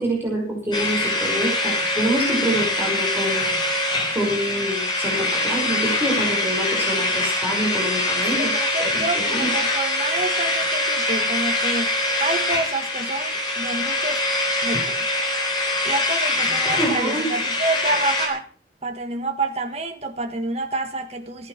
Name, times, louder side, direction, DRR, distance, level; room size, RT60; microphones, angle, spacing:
voice 1, 0.0-3.5 4.1-8.5 8.8-9.5 16.8-17.3, right 1 dB, 10° right, -3 dB, 5.7 m, -26 dB
sound 1, 0.7-18.3, left 2 dB, 25° left, 3.6 m, -23 dB
voice 2, 8.4-11.9 12.2-14.2 14.6-15.1 15.8-18.5 18.8-21.5, right 2 dB, 35° right, 6 dB, 1.5 m, -28 dB
14.5 x 11.5 x 5.9 m, 0.37 s
head